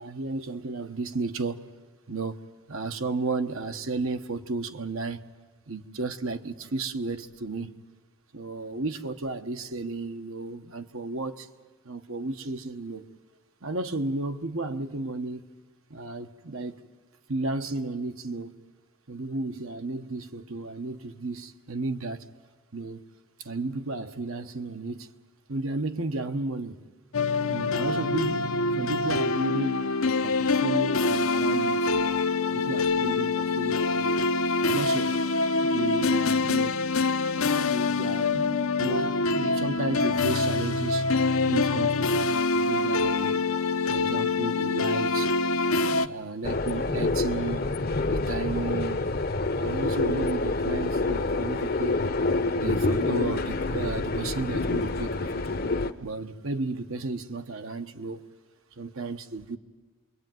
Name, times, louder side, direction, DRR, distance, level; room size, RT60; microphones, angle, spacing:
voice 1, 0.0-1.6 2.1-5.2 5.7-7.7 8.3-11.5 11.8-13.1 13.6-15.4 15.9-16.8 17.3-18.5 19.1-22.3 22.7-23.0 23.4-25.1 25.5-26.8 27.5-29.9 30.2-32.1 32.5-34.2 34.6-35.1 35.6-36.7 37.3-41.1 41.5-43.4 43.9-45.3 45.9-47.7 48.1-49.0 49.6-52.0 52.5-55.6 56.0-58.2 58.8-59.6, right 3 dB, 70° right, 1.3 m, -33 dB
sound 1, 27.1-46.1, left 3 dB, 70° left, 0.8 m, -25 dB
sound 2, 46.4-55.9, left 2 dB, 40° left, 0.8 m, -27 dB
27.5 x 22.5 x 9.3 m
head